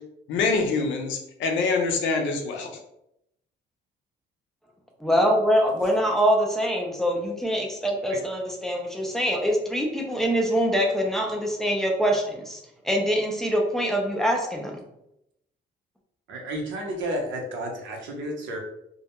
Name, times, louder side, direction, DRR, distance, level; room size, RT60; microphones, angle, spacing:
voice 1, 0.3-2.8, left 4 dB, 75° left, 3 dB, 0.6 m, -25 dB
voice 2, 5.0-12.6 12.8-14.8, equal, ahead, 0 dB, 0.3 m, -24 dB
voice 3, 16.3-18.6, right 1 dB, 80° right, 1 dB, 0.7 m, -31 dB
2.3 x 2.1 x 2.8 m, 0.79 s
cardioid pair, 165°, 19 cm